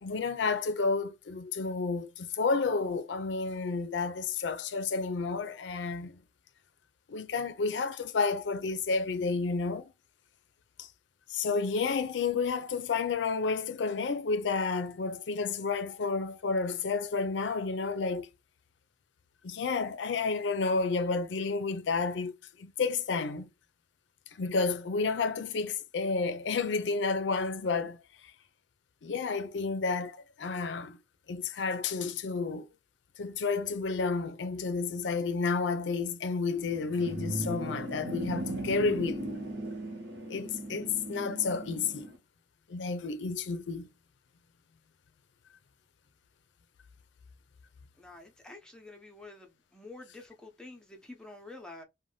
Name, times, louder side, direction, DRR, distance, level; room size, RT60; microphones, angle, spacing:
voice 1, 0.0-6.2 7.1-9.9 10.8-10.9 11.3-18.3 19.4-22.3 22.6-23.5 24.4-28.0 29.0-31.0 31.3-32.6 33.2-39.2 40.3-42.1 42.7-43.9, left 4 dB, 85° left, 0.5 m, -31 dB
sound 1, 36.6-42.2, right 1 dB, 65° right, 0.9 m, -37 dB
voice 2, 48.0-51.8, left 2 dB, 5° left, 0.6 m, -48 dB
2.6 x 2.2 x 3.2 m
head